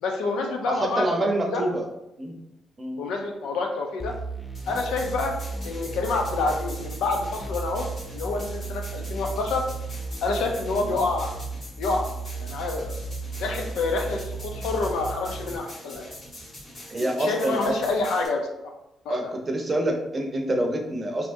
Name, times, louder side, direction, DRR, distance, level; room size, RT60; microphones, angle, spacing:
voice 1, 0.0-1.6 3.0-4.1 4.7-5.4 5.6-9.6 10.2-11.3 11.8-12.1 12.4-12.9 13.4-16.0 17.0-18.5 19.1-19.2, left 3 dB, 85° left, 3 dB, 0.5 m, -27 dB
voice 2, 0.7-1.9 2.2-2.3 2.8-3.0 10.8-10.9 16.9-17.8 19.1-21.3, right 1 dB, 30° right, 2 dB, 0.6 m, -26 dB
sound 1, 4.0-15.6, right 3 dB, 10° left, 0.4 m, -35 dB
sound 2, 4.5-18.3, left 1 dB, 45° left, 1.5 m, -43 dB
3.4 x 2.7 x 2.6 m, 0.89 s
cardioid pair, 90°, 0 cm